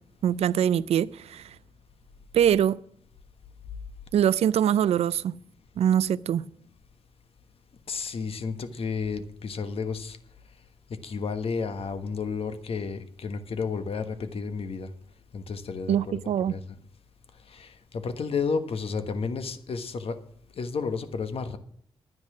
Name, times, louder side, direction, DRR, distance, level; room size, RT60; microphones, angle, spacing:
voice 1, 0.2-1.5 2.3-2.8 4.1-5.4 5.8-6.4 15.9-16.6, right 9 dB, 75° right, 0.4 m, -23 dB
voice 2, 7.9-10.2 11.0-14.9 15.3-16.6 17.5-17.7 18.0-20.2 20.6-21.6, left 5 dB, 65° left, 1.3 m, -32 dB
11.0 x 9.7 x 6.1 m
cardioid pair, 75°, 11 cm